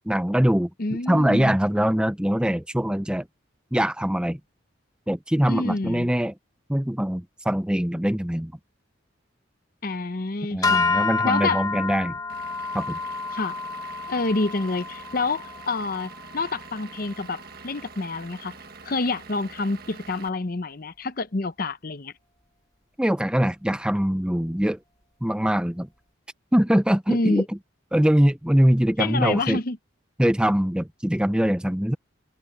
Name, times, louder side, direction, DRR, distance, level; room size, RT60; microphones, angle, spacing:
voice 1, 0.1-0.7 1.1-3.2 3.7-4.4 5.1-6.3 6.7-8.5 10.5-12.1 12.7-13.0 23.0-24.8 25.2-25.9 26.5-27.4 27.9-29.6 30.2-32.0, equal, 5° right, 0.5 m, -22 dB
voice 2, 0.8-1.5 5.5-6.1 9.8-11.6 13.3-13.6 14.1-18.6 18.8-22.1 27.1-27.5 29.0-29.8, left 3 dB, 45° left, 0.7 m, -28 dB
sound 1, 10.6-17.0, left 4 dB, 20° left, 1.2 m, -29 dB
Vehicle / Engine, 12.3-20.3, right 5 dB, 50° right, 1.6 m, -45 dB
head